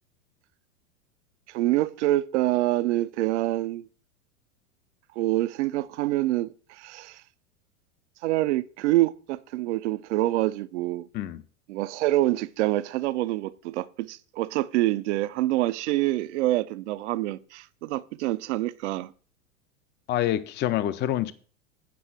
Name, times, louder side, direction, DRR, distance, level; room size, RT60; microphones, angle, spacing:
voice 1, 1.5-3.9 5.2-7.2 8.2-11.1 11.7-19.1, right 16 dB, 55° right, 0.6 m, -26 dB
voice 2, 20.1-21.3, left 12 dB, 25° left, 0.6 m, -26 dB
8.4 x 5.4 x 6.1 m
hypercardioid pair, 95°, 41 cm